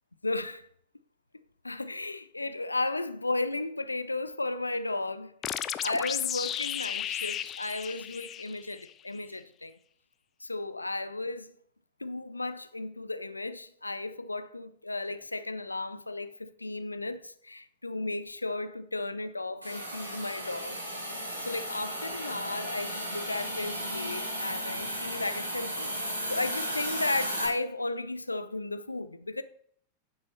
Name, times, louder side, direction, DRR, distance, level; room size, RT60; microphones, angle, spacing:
voice 1, 0.2-0.7 1.6-9.8 10.4-11.5 12.0-20.8 21.4-29.4, left 2 dB, 80° left, 0.5 m, -34 dB
sound 1, 5.4-8.9, left 10 dB, 30° left, 0.4 m, -34 dB
Hiss, 19.6-27.5, equal, 85° right, 2.7 m, -35 dB
10.0 x 5.5 x 4.2 m
figure-of-eight pair, 90°, 0 cm